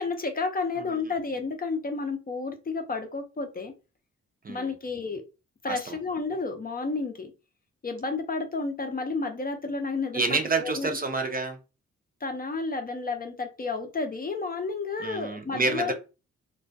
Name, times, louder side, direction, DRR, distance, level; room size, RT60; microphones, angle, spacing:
voice 1, 0.0-3.7 4.5-5.2 5.6-7.3 7.8-11.0 12.2-15.9, left 4 dB, 30° left, 0.5 m, -31 dB
voice 2, 5.7-6.0 10.1-11.6 15.0-15.9, right 3 dB, 30° right, 0.5 m, -29 dB
2.2 x 2.1 x 2.6 m
cardioid pair, 70°, 29 cm